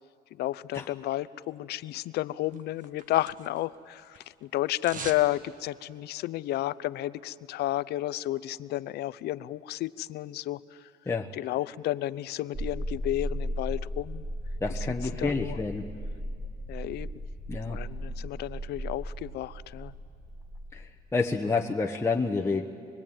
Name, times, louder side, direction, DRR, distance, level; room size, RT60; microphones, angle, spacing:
voice 1, 0.4-10.9 11.3-14.2 14.7-14.9 15.1-15.6 16.7-17.1 17.7-19.9, left 15 dB, 75° left, 17 dB, 0.6 m, -32 dB
sound 1, 2.5-3.8 4.0-5.3 5.6-5.7, right 5 dB, 50° right, 1.7 m, -42 dB
sound 2, 12.5-21.1, equal, 30° right, 6.5 m, -36 dB
voice 2, 14.6-15.8 17.5-17.8 20.7-22.6, left 4 dB, 15° left, 2 dB, 1.0 m, -29 dB
24.5 x 22.5 x 9.0 m, 2.4 s
cardioid pair, 110°, 17 cm